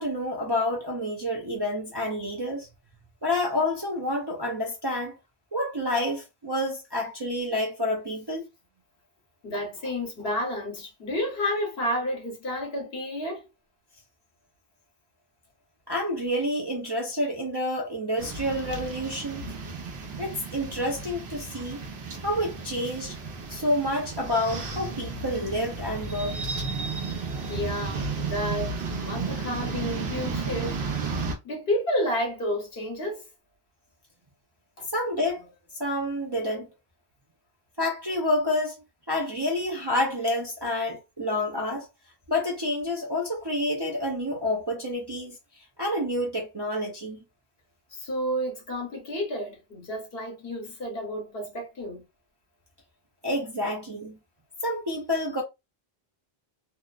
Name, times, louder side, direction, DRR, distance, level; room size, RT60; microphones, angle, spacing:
voice 1, 0.0-2.7 3.2-5.2 5.5-8.5 15.9-19.5 20.2-21.8 22.2-23.2 23.5-26.4 34.9-35.5 35.8-36.7 37.8-38.7 39.1-41.9 42.3-47.2 53.2-54.2 54.6-55.4, left 1 dB, 35° right, 0.4 m, -28 dB
voice 2, 9.4-13.5 27.5-30.9 31.4-33.2 34.8-34.9 47.9-52.0, equal, 70° left, 1.2 m, -31 dB
sound 1, 18.2-31.3, right 4 dB, 80° right, 1.0 m, -33 dB
2.7 x 2.0 x 2.3 m
omnidirectional pair, 1.1 m